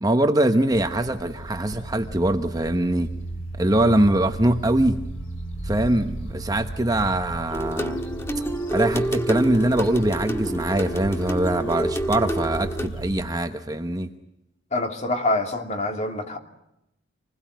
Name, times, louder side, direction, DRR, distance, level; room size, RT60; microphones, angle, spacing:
voice 1, 0.0-3.1 3.5-5.0 5.6-8.0 8.7-14.1, right 1 dB, 20° right, 1.1 m, -22 dB
sound 1, 0.7-13.3, right 1 dB, 85° left, 6.2 m, -35 dB
sound 2, 7.5-12.9, right 1 dB, 15° left, 1.5 m, -28 dB
voice 2, 14.7-16.4, left 2 dB, 35° left, 2.9 m, -26 dB
27.5 x 20.5 x 9.3 m
head